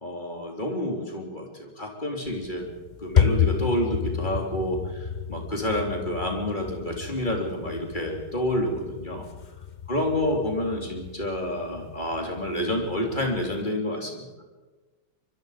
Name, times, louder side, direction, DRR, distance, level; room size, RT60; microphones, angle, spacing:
voice 1, 0.0-2.7 3.0-9.2 9.9-14.3, left 1 dB, 25° left, 1 dB, 3.7 m, -29 dB
sound 1, 2.3-13.6, left 7 dB, 60° left, 0.4 m, -31 dB
24.0 x 22.5 x 5.2 m, 1.3 s
omnidirectional pair, 2.0 m